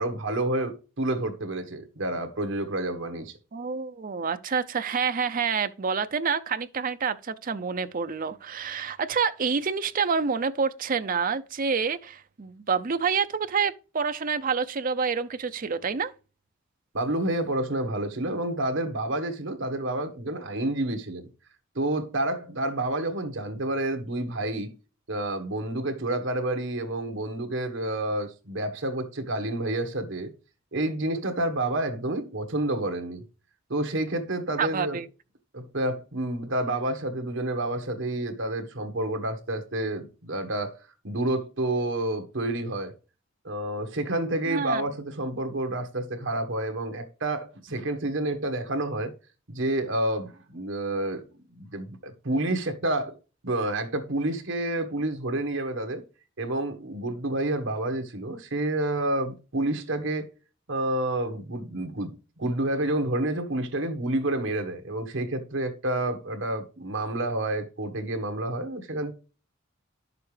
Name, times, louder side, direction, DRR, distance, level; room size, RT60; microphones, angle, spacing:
voice 1, 0.0-3.3 16.9-21.3 21.7-24.7 25.1-30.3 30.7-33.2 33.7-35.0 35.5-40.8 41.0-42.9 43.4-49.1 49.5-51.2 51.5-53.1 53.4-56.0 56.4-60.3 60.7-69.1, right 1 dB, 65° right, 1.4 m, -29 dB
voice 2, 3.5-16.1 34.6-35.1 44.5-44.8, right 5 dB, 45° right, 0.6 m, -28 dB
10.5 x 6.8 x 3.3 m
head